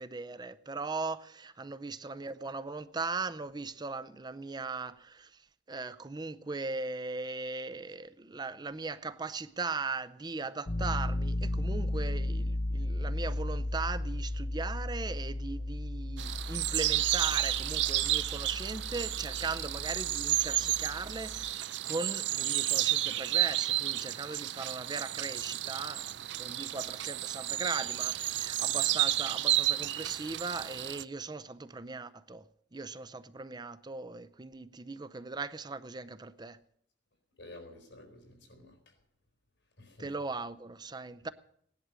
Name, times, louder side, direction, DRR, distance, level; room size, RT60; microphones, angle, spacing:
voice 1, 0.0-5.3 5.7-26.1 26.4-32.4 32.7-36.6 40.0-41.3, right 3 dB, 25° right, 0.6 m, -39 dB
Piano, 10.7-21.5, left 1 dB, 60° left, 0.8 m, -35 dB
sound 1, 16.2-31.0, right 14 dB, 75° right, 0.5 m, -31 dB
voice 2, 37.4-38.9 39.8-40.1, left 2 dB, 85° left, 4.3 m, -51 dB
17.5 x 11.0 x 6.3 m
head